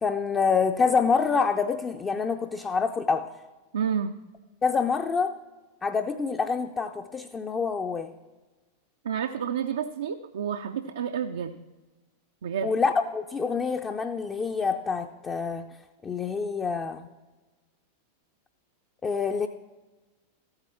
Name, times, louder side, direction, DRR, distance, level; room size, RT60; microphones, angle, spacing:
voice 1, 0.0-3.3 4.6-5.4 5.8-8.1 12.6-15.8 16.0-17.1 19.0-19.5, left 5 dB, 20° left, 5 dB, 0.5 m, -26 dB
voice 2, 3.7-4.1 9.0-11.5 12.4-12.7, right 7 dB, 65° right, 7 dB, 0.4 m, -29 dB
14.0 x 8.8 x 4.3 m, 1.2 s
figure-of-eight pair, 90°, 0 cm